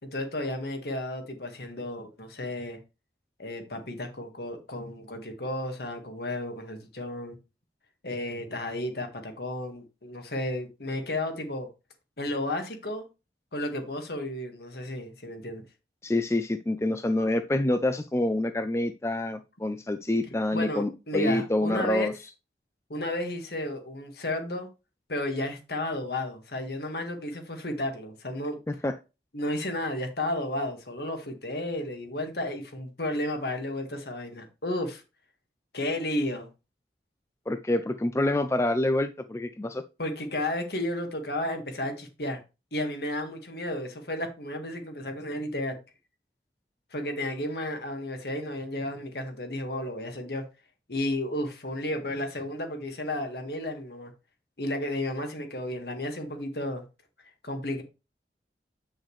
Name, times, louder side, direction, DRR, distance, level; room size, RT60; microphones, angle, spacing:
voice 1, 0.0-2.8 3.4-7.4 8.0-11.7 12.2-13.0 13.5-15.6 20.5-22.1 22.9-24.7 25.1-28.6 29.3-35.0 35.7-36.5 40.0-42.4 42.7-45.8 46.9-50.4 50.9-54.1 54.6-56.8 57.4-57.8, left 1 dB, 65° left, 1.7 m, -33 dB
voice 2, 16.0-22.1 28.8-28.9 37.5-39.8, left 1 dB, 15° left, 0.4 m, -27 dB
8.3 x 6.3 x 3.2 m
head